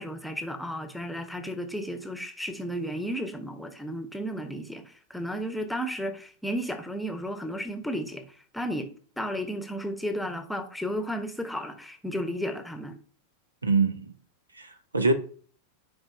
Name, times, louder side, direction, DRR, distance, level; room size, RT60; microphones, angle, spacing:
voice 1, 0.0-8.9 9.2-13.0, equal, 5° left, 1.0 m, -33 dB
voice 2, 13.6-14.1 14.6-15.1, right 3 dB, 80° right, 0.9 m, -24 dB
11.5 x 5.1 x 2.6 m
figure-of-eight pair, 90°, 0 cm